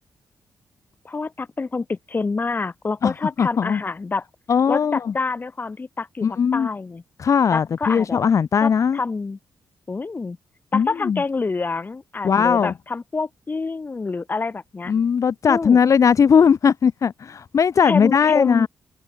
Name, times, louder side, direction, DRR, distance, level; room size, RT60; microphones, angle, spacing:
voice 1, 1.0-4.2 4.7-6.3 6.5-7.0 7.5-8.2 8.6-9.4 9.9-10.4 10.7-14.9 15.5-15.8 17.8-18.7, left 4 dB, 30° left, 2.0 m, -27 dB
voice 2, 3.0-3.8 4.5-5.1 6.2-6.7 7.2-9.0 10.7-11.2 12.2-12.7 14.9-18.7, left 6 dB, 50° left, 1.4 m, -18 dB
cardioid pair, 110°, 7 cm